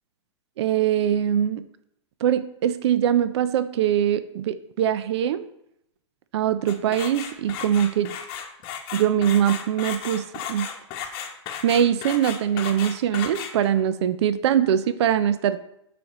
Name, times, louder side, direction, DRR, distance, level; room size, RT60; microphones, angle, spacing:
voice 1, 0.6-1.6 2.2-5.5 6.3-8.1 8.9-10.7 11.6-15.6, right 10 dB, 65° right, 13 dB, 0.5 m, -22 dB
sound 1, 6.7-13.8, left 8 dB, 35° left, 1.0 m, -34 dB
12.0 x 5.0 x 3.0 m, 0.78 s
hypercardioid pair, 145°, 15 cm